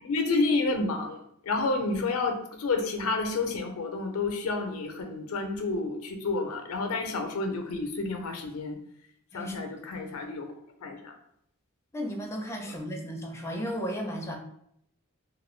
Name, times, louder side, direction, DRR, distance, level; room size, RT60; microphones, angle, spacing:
voice 1, 0.0-1.2 1.4-8.8 9.3-10.5 10.8-11.1, left 3 dB, 85° left, 5 dB, 0.5 m, -30 dB
voice 2, 9.3-10.0 11.9-14.4, equal, 15° left, 1 dB, 0.4 m, -35 dB
2.4 x 2.1 x 3.1 m, 0.72 s
head